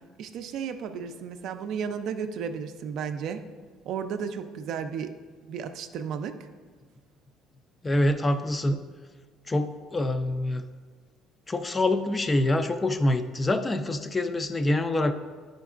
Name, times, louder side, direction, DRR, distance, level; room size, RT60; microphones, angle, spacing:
voice 1, 0.2-3.4 3.9-5.1 5.5-6.4, right 7 dB, 65° right, 8 dB, 0.4 m, -33 dB
voice 2, 7.8-8.8 9.5-10.6 11.5-15.1, left 1 dB, 20° left, 9 dB, 0.3 m, -25 dB
9.0 x 5.1 x 2.4 m, 1.5 s
cardioid pair, 120°, 0 cm